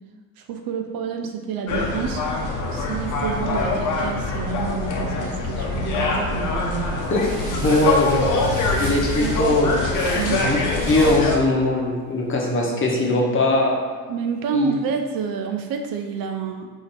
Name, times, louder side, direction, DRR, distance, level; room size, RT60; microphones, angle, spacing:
voice 1, 0.4-2.2 2.7-7.0 7.5-7.6 8.8-9.6 10.2-10.6 14.1-16.7, right 7 dB, 55° right, 5 dB, 0.5 m, -29 dB
sound 1, 1.7-11.4, left 3 dB, 45° left, 0.9 m, -24 dB
sound 2, 7.0-11.3, right 2 dB, 70° right, 1.3 m, -38 dB
voice 2, 7.6-8.2 8.8-9.9 10.3-10.6 10.9-13.8 14.5-14.7, left 2 dB, 30° left, -2 dB, 1.1 m, -20 dB
4.0 x 2.9 x 4.0 m, 1.5 s
supercardioid pair, 75°, 42 cm